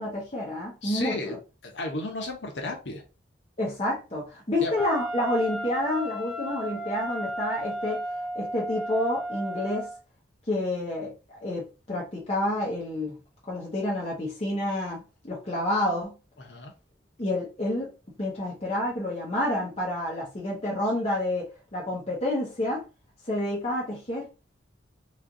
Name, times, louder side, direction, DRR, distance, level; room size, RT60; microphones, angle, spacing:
voice 1, 0.0-1.1 3.6-8.0 8.3-9.9 10.5-13.1 13.5-16.1 17.2-17.9 18.2-22.8 23.2-24.3, left 1 dB, 35° left, 1.0 m, -29 dB
voice 2, 0.8-3.0 4.6-4.7 16.4-16.7, left 2 dB, 70° left, 1.0 m, -34 dB
Wind instrument woodwind instrument, 4.7-10.0, right 1 dB, ahead, 0.6 m, -34 dB
3.2 x 2.4 x 3.8 m
head